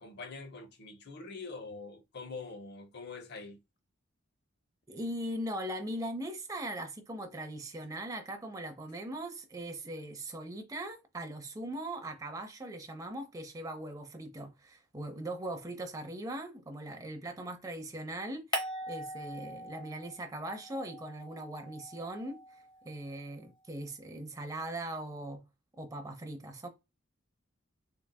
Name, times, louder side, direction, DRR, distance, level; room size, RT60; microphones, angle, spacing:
voice 1, 0.0-3.6, left 4 dB, 50° left, 0.6 m, -44 dB
voice 2, 4.9-18.6 18.9-25.4 25.8-26.7, right 1 dB, 15° right, 0.6 m, -40 dB
sound 1, 18.5-20.2 20.5-23.0, equal, 20° left, 0.9 m, -41 dB
3.8 x 3.4 x 2.2 m
head